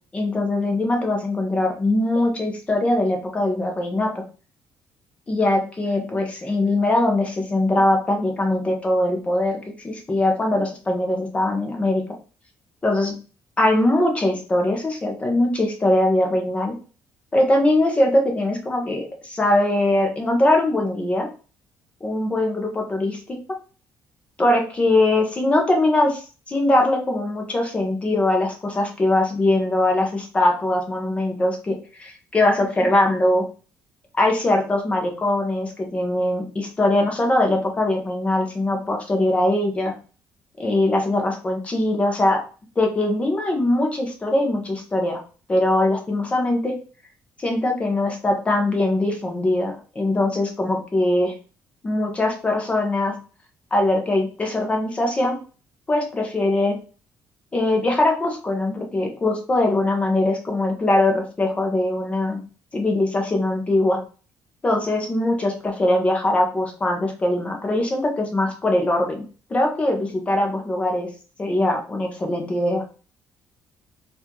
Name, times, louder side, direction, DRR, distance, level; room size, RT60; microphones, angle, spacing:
voice 1, 0.1-4.2 5.3-9.6 9.8-12.0 12.8-13.1 13.6-16.7 17.3-21.3 22.0-23.4 24.4-26.2 26.5-33.4 34.1-39.9 40.6-42.4 42.8-45.2 45.5-46.8 47.4-51.3 51.8-53.2 53.7-55.4 55.9-56.8 57.5-62.4 62.7-64.0 64.6-69.2 69.5-71.1 71.4-72.8, left 1 dB, 20° left, 2 dB, 0.9 m, -21 dB
4.2 x 2.6 x 2.9 m, 0.37 s
cardioid pair, 145°, 6 cm